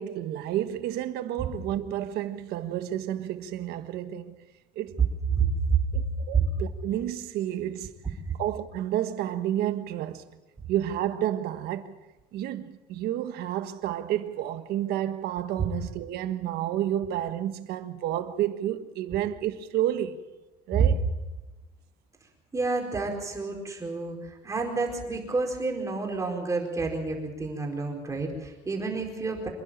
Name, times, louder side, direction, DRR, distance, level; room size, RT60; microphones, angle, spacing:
voice 1, 0.0-4.4 4.7-5.1 5.9-8.0 8.4-10.3 10.7-12.0 12.3-20.2 20.7-21.0, right 12 dB, 65° right, 1.4 m, -30 dB
voice 2, 5.3-6.0 6.3-6.5 8.3-8.4 22.5-29.5, right 4 dB, 20° right, 4.5 m, -29 dB
27.0 x 11.0 x 9.0 m
cardioid pair, 140°, 18 cm